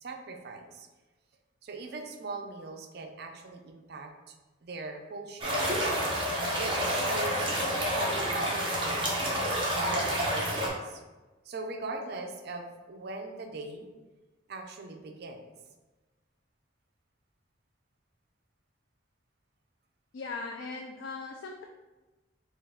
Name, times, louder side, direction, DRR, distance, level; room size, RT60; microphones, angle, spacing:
voice 1, 0.0-0.9 1.6-4.3 4.6-5.6 5.8-6.0 6.6-7.5 7.9-11.0 11.4-13.9 14.5-15.5, right 3 dB, 55° right, 4 dB, 0.5 m, -40 dB
sound 1, 5.4-10.7, equal, 25° right, 0.8 m, -29 dB
voice 2, 20.1-21.6, left 4 dB, 75° left, 2 dB, 0.4 m, -39 dB
4.5 x 2.3 x 3.6 m, 1.2 s
head